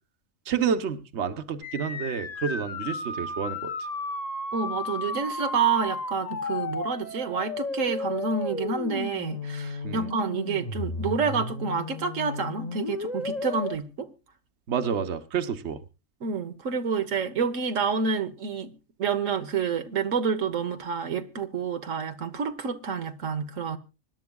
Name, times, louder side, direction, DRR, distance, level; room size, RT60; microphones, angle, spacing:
voice 1, 0.5-3.7 9.8-10.1 14.7-15.8, right 7 dB, 60° right, 1.3 m, -29 dB
sound 1, 1.6-13.8, left 3 dB, 35° left, 1.1 m, -33 dB
voice 2, 4.5-14.1 16.2-18.7 19.0-23.8, right 5 dB, 85° right, 1.5 m, -28 dB
25.5 x 11.0 x 2.3 m
omnidirectional pair, 1.3 m